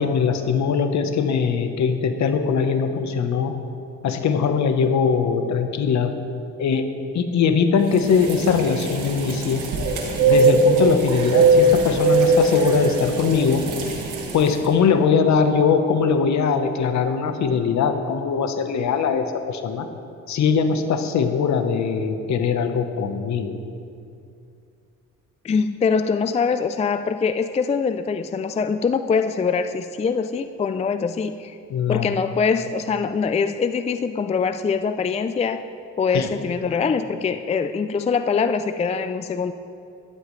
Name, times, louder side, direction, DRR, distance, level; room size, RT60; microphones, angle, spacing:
voice 1, 0.0-3.5 4.0-6.1 6.6-9.6 10.2-13.7 14.3-19.9 20.3-23.6 31.7-32.1 36.1-36.3, left 6 dB, 65° left, 7 dB, 1.1 m, -21 dB
dove call, 7.9-14.6, right 3 dB, 80° right, 1.9 m, -20 dB
voice 2, 25.4-31.6 31.9-35.6 36.0-39.5, left 5 dB, 20° left, 10 dB, 0.4 m, -23 dB
13.5 x 12.0 x 3.2 m, 2.5 s
cardioid pair, 90°, 30 cm